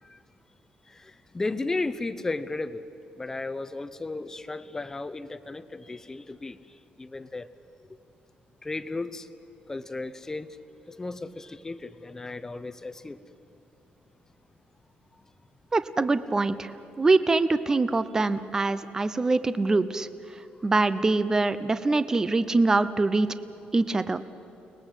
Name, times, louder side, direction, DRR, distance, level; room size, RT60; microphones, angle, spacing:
voice 1, 0.9-2.8 3.2-6.6 7.0-7.5 8.6-9.3 9.7-10.6 10.9-13.2, left 3 dB, 15° left, 13 dB, 0.8 m, -34 dB
voice 2, 15.7-16.7 17.0-20.1 20.6-23.3 23.7-24.2, right 3 dB, 20° right, 13 dB, 0.7 m, -24 dB
29.5 x 20.0 x 8.2 m, 2.8 s
cardioid pair, 155°, 3 cm